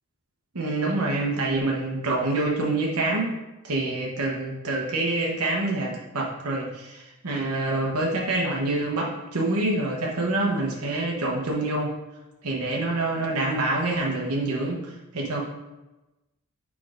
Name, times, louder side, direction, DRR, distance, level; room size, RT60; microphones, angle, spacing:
voice 1, 0.5-3.4 3.6-11.9 12.4-15.4, right 2 dB, 85° right, -2 dB, 1.1 m, -26 dB
6.3 x 3.7 x 5.0 m, 1.0 s
head